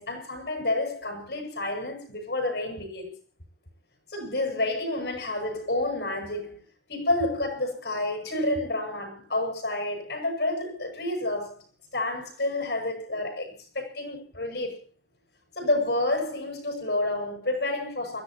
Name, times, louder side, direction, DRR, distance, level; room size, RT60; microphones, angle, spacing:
voice 1, 0.0-3.1 4.1-6.6 6.9-11.6 11.9-14.8 15.6-18.2, left 2 dB, 80° left, 7.2 m, -29 dB
29.5 x 14.5 x 3.1 m
head